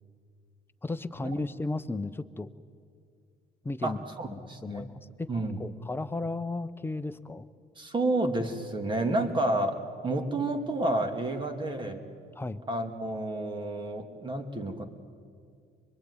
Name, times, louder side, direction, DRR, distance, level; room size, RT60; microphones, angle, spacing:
voice 1, 0.8-2.5 3.6-4.0 4.3-5.3 5.6-7.5 12.4-12.6, left 2 dB, 15° left, 10 dB, 1.0 m, -34 dB
voice 2, 3.8-4.9 5.3-5.6 7.8-12.0 12.7-14.8, right 2 dB, 30° right, 5 dB, 2.6 m, -30 dB
24.5 x 22.5 x 9.8 m, 2.2 s
cardioid pair, 110°, 17 cm